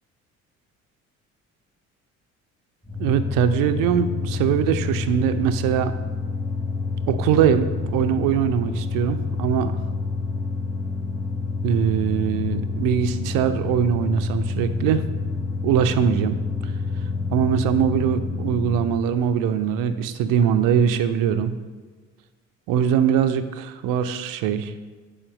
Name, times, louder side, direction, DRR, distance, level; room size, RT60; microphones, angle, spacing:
sound 1, 2.9-19.0, left 4 dB, 5° left, 1.5 m, -28 dB
voice 1, 3.0-5.9 7.1-9.8 11.6-15.0 15.6-16.4 17.3-21.5 22.7-24.7, right 8 dB, 55° right, 10 dB, 0.7 m, -22 dB
7.2 x 5.1 x 6.9 m, 1.4 s
figure-of-eight pair, 50°, 40 cm